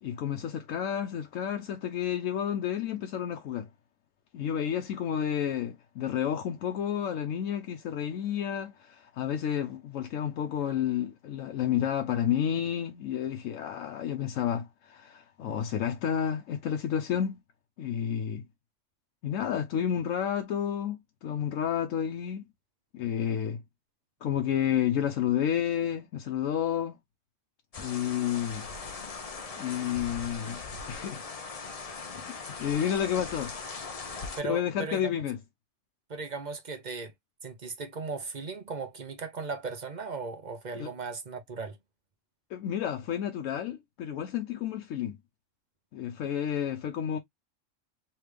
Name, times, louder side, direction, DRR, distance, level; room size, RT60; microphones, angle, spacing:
voice 1, 0.0-3.7 4.3-17.4 17.8-18.5 19.2-22.4 22.9-23.6 24.2-27.0 27.8-28.7 29.6-30.6 30.9-31.3 32.2-33.5 34.4-35.4 40.7-40.9 42.5-45.2 45.9-47.2, left 9 dB, 90° left, 1.0 m, -30 dB
sound 1, 27.7-34.4, left 4 dB, 35° left, 0.7 m, -40 dB
voice 2, 34.4-35.2 36.1-37.1 37.4-41.8, right 4 dB, 40° right, 0.9 m, -37 dB
3.3 x 3.3 x 3.2 m
omnidirectional pair, 1.3 m